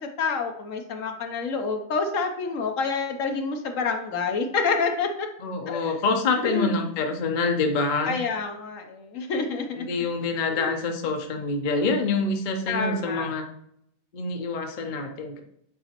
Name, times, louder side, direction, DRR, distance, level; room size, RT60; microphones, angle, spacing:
voice 1, 0.0-5.3 5.7-5.9 6.4-6.8 8.1-9.9 10.5-10.7 12.7-13.3, left 4 dB, 70° left, 5 dB, 1.1 m, -28 dB
voice 2, 5.4-8.1 9.8-13.4 14.1-15.4, left 3 dB, 45° left, 4 dB, 0.7 m, -26 dB
7.8 x 4.1 x 2.9 m, 0.72 s
omnidirectional pair, 1.5 m